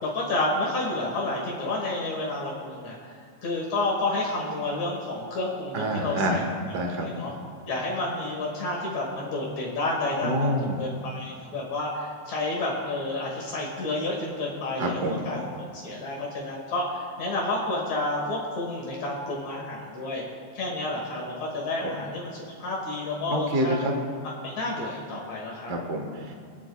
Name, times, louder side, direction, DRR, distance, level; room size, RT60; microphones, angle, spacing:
voice 1, 0.0-3.1 3.4-6.4 7.0-7.3 7.7-15.4 15.7-20.2 20.5-23.8 24.4-25.7, left 2 dB, 70° left, -2 dB, 2.6 m, -30 dB
voice 2, 5.7-6.5 6.7-7.1 10.2-10.8 14.8-15.2 21.8-21.9 23.3-23.9 25.7-26.3, equal, 60° right, 2 dB, 0.7 m, -27 dB
28.0 x 9.3 x 2.2 m, 2.3 s
omnidirectional pair, 3.4 m